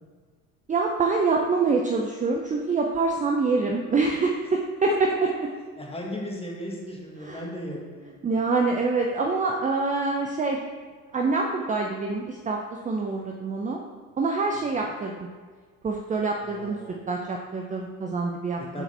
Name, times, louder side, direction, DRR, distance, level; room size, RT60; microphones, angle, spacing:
voice 1, 0.7-4.9 7.2-7.5 8.2-10.6 11.1-12.6 12.8-13.8 14.2-15.3 15.8-16.8 17.1-18.8, right 4 dB, 20° right, 1 dB, 0.6 m, -25 dB
voice 2, 5.8-8.1 14.8-14.9 16.4-17.0 18.6-18.8, left 1 dB, 15° left, -2 dB, 1.7 m, -36 dB
6.9 x 4.6 x 4.3 m, 1.5 s
hypercardioid pair, 85°, 42 cm